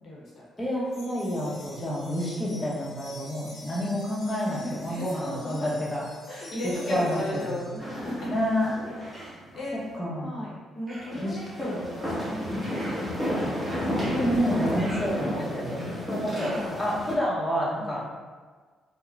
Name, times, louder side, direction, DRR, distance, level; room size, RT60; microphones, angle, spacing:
voice 1, 0.0-0.4 4.4-5.7 6.3-8.3 9.2-9.8 10.2-13.6 15.2-15.4 16.4-16.8 17.8-17.9, left 1 dB, 60° left, -6 dB, 0.9 m, -36 dB
voice 2, 0.6-6.1 6.6-7.6 8.3-8.8 9.7-10.4 11.2-11.8 12.5-12.8 14.1-18.2, equal, 15° left, -6 dB, 0.9 m, -29 dB
sound 1, 0.9-7.8, left 2 dB, 80° left, 0.8 m, -48 dB
sound 2, 7.8-9.3 9.6-9.7 11.1-17.2, equal, 15° right, 1.2 m, -32 dB
Human voice, 9.1-9.5 10.9-11.3 12.7-13.3 14.7-15.6 16.4-16.9, right 1 dB, 35° right, 0.7 m, -43 dB
3.6 x 2.1 x 2.4 m, 1.5 s
cardioid pair, 90°, 0 cm